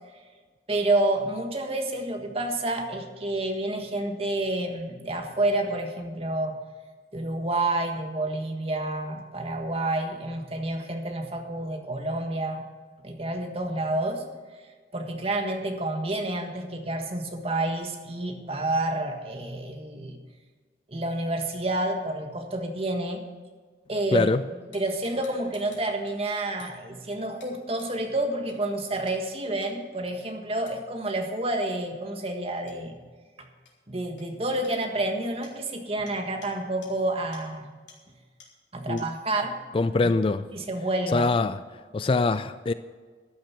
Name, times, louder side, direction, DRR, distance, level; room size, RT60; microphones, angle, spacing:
voice 1, 0.7-6.6 7.1-12.6 13.0-14.2 14.9-20.2 20.9-23.2 23.9-24.3 24.7-33.0 33.4-33.5 33.9-37.7 38.7-39.6 40.0-40.2 40.5-41.3, right 2 dB, 30° right, 4 dB, 1.5 m, -29 dB
voice 2, 24.1-24.4 38.9-39.0 39.7-40.5 41.1-41.6 41.9-42.7, left 3 dB, 30° left, 13 dB, 0.3 m, -23 dB
sound 1, 24.7-26.2 26.6-26.8 27.4-27.5 27.8-27.9 28.5-28.6 29.1-29.2 29.6-29.7 30.7-30.8 32.7-32.8 33.7-33.8 34.2-34.3 34.6-34.7 35.4-35.6 36.1-36.2 36.4-36.5 36.8-36.9 37.3-37.4 37.9-38.0 38.4-38.5 39.0-39.1, left 5 dB, 80° left, 3.8 m, -51 dB
13.0 x 10.5 x 5.9 m, 1.5 s
head